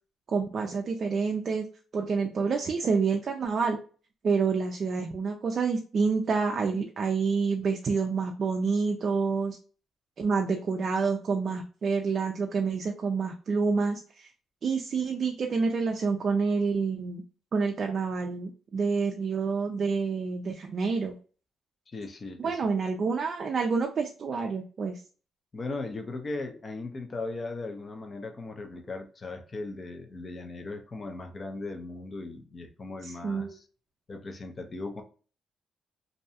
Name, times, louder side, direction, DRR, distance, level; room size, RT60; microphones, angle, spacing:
voice 1, 0.3-1.6 1.9-3.8 4.2-9.6 10.2-14.3 14.6-17.2 17.5-21.1 22.4-25.0 33.0-33.6, right 5 dB, 50° right, 2 dB, 0.4 m, -28 dB
voice 2, 21.9-22.6 25.5-33.7 34.1-35.0, left 3 dB, 35° left, 5 dB, 0.6 m, -38 dB
2.6 x 2.2 x 2.7 m, 0.38 s
cardioid pair, 90°, 0 cm